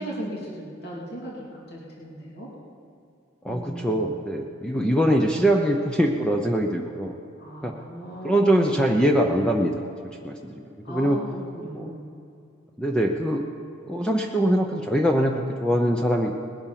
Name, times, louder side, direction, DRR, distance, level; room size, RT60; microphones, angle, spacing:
voice 1, 0.0-2.5 3.4-4.1 7.4-8.7 10.8-12.1, right 1 dB, 50° left, -5 dB, 3.0 m, -37 dB
voice 2, 3.4-7.1 7.6-7.7 8.2-9.8 10.2-11.2 11.7-11.9 12.8-13.4 13.8-16.3, equal, 5° left, 1 dB, 0.7 m, -23 dB
20.0 x 8.6 x 5.9 m, 2.5 s
head